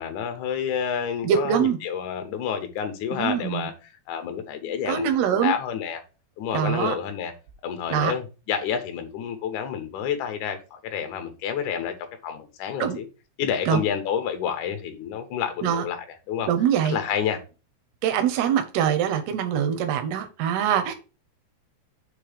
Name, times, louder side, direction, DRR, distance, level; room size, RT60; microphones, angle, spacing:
voice 1, 0.0-3.7 4.1-6.0 6.4-7.3 7.6-11.9 12.2-13.1 13.4-16.5 16.9-17.4, left 8 dB, 70° left, 2.0 m, -29 dB
voice 2, 1.2-1.8 3.1-3.7 4.9-5.5 6.5-6.9 7.9-8.1 12.8-13.0 13.7-13.8 15.6-15.8 16.5-17.0 18.0-20.9, right 9 dB, 85° right, 2.9 m, -23 dB
7.0 x 3.1 x 5.0 m
omnidirectional pair, 4.4 m